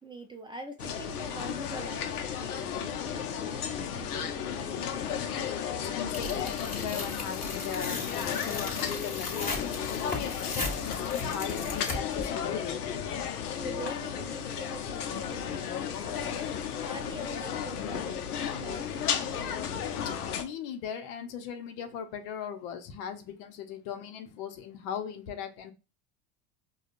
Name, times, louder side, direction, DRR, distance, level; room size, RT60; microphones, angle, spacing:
voice 1, 0.0-5.2 13.5-20.0, right 2 dB, 10° right, 3 dB, 0.5 m, -45 dB
sound 1, 0.8-20.4, left 8 dB, 90° left, 0.6 m, -34 dB
voice 2, 5.7-9.7 10.0-12.8 20.4-25.7, left 8 dB, 60° left, 7 dB, 0.8 m, -38 dB
Tearing, 6.1-12.3, left 3 dB, 20° left, 1.4 m, -37 dB
4.9 x 2.3 x 2.4 m, 0.29 s
hypercardioid pair, 80°, 44 cm